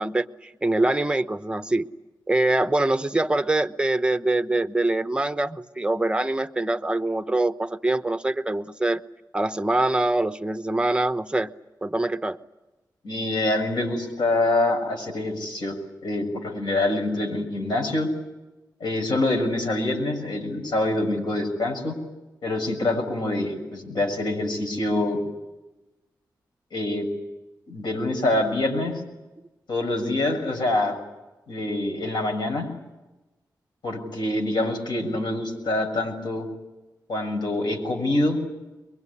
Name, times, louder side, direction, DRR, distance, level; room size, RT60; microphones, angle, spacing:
voice 1, 0.0-1.9 2.3-9.0 9.3-11.5 11.8-12.4, right 2 dB, 15° right, 10 dB, 1.0 m, -24 dB
voice 2, 13.0-15.8 16.0-18.1 18.8-22.0 22.4-25.2 26.7-27.1 27.7-29.0 29.7-31.0 31.5-32.7 33.8-36.5 37.1-38.4, left 2 dB, 85° left, 2 dB, 6.7 m, -25 dB
23.0 x 23.0 x 9.8 m, 1.1 s
cardioid pair, 75°, 7 cm